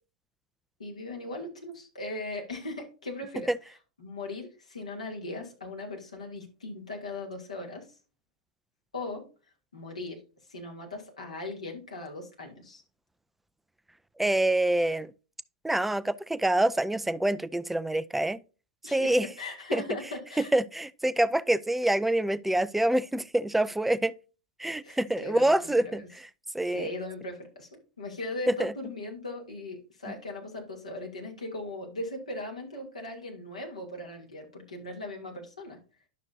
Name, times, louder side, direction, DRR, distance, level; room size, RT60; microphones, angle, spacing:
voice 1, 0.8-3.5 4.0-7.9 8.9-9.2 9.7-10.2 10.5-12.8 18.8-20.5 24.8-26.1 26.7-27.7 28.0-35.8, left 2 dB, 80° left, 2.7 m, -38 dB
voice 2, 14.2-15.1 15.6-18.4 18.8-19.3 19.7-19.8 20.4-24.1 24.6-26.0 26.5-26.9 28.6-28.7, right 1 dB, 5° right, 0.4 m, -26 dB
11.0 x 6.2 x 2.7 m
figure-of-eight pair, 90°, 3 cm